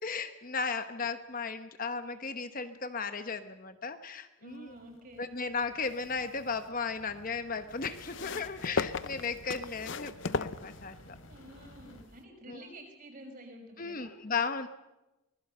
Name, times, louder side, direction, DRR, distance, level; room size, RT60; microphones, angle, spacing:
voice 1, 0.0-4.8 5.2-11.2 12.5-12.6 13.8-14.7, left 5 dB, 40° left, 9 dB, 1.0 m, -35 dB
voice 2, 4.4-5.3 8.2-8.3 11.3-14.1, right 1 dB, 40° right, 2 dB, 5.8 m, -49 dB
sound 1, 4.5-12.0, left 1 dB, 85° left, 3.7 m, -55 dB
sound 2, 5.8-6.7 7.8-11.3 12.2-12.3, left 4 dB, 60° left, 0.7 m, -36 dB
24.5 x 20.0 x 6.8 m, 0.99 s
head